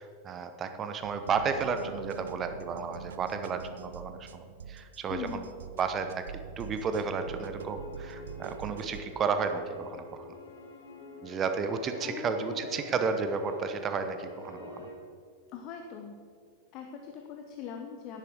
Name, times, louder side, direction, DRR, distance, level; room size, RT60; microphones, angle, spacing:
voice 1, 0.0-5.5 5.8-6.2 6.6-10.3 11.2-14.9, right 5 dB, 25° right, 8 dB, 0.9 m, -32 dB
sound 1, 1.0-9.0, right 7 dB, 65° right, 0.5 m, -44 dB
voice 2, 5.1-5.5 12.0-12.6 15.5-16.1 16.7-18.2, left 7 dB, 40° left, 4 dB, 0.9 m, -41 dB
sound 2, 7.3-14.9, left 3 dB, 65° left, 1.8 m, -46 dB
10.5 x 10.5 x 4.7 m, 2.1 s
figure-of-eight pair, 90°, 0 cm